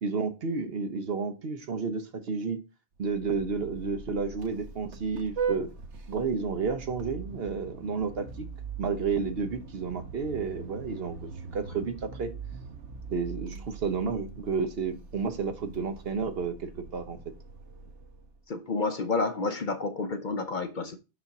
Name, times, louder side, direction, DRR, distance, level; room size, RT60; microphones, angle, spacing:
voice 1, 0.0-2.6 3.0-5.7 6.1-8.5 8.8-12.3 13.1-17.2, right 5 dB, 60° right, 1.1 m, -31 dB
Vehicle horn car horn honking, 3.0-18.4, right 5 dB, 75° right, 1.3 m, -41 dB
voice 2, 18.5-21.0, left 3 dB, 50° left, 0.7 m, -30 dB
7.4 x 4.2 x 5.9 m
omnidirectional pair, 1.2 m